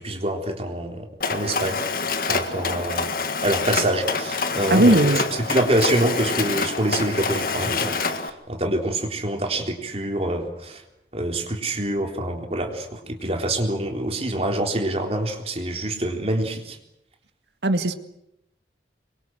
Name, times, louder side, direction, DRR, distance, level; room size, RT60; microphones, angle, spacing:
voice 1, 0.0-1.8 2.3-3.1 3.4-5.1 5.5-10.8 11.1-16.8, right 1 dB, 35° right, 3 dB, 3.8 m, -26 dB
Mechanisms, 1.2-8.3, left 4 dB, 55° left, 1.8 m, -26 dB
voice 2, 4.7-5.2 17.6-17.9, right 1 dB, 80° right, 9 dB, 1.9 m, -17 dB
25.5 x 23.5 x 7.8 m, 0.83 s
head